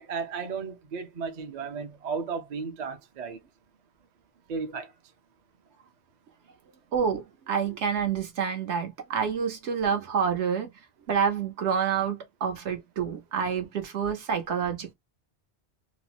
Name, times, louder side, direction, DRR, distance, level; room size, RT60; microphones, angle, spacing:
voice 1, 0.0-3.4 4.5-4.9, right 5 dB, 50° right, 0.6 m, -34 dB
voice 2, 6.9-10.7 11.1-14.9, right 7 dB, 80° right, 1.1 m, -28 dB
2.8 x 2.1 x 3.0 m
omnidirectional pair, 1.2 m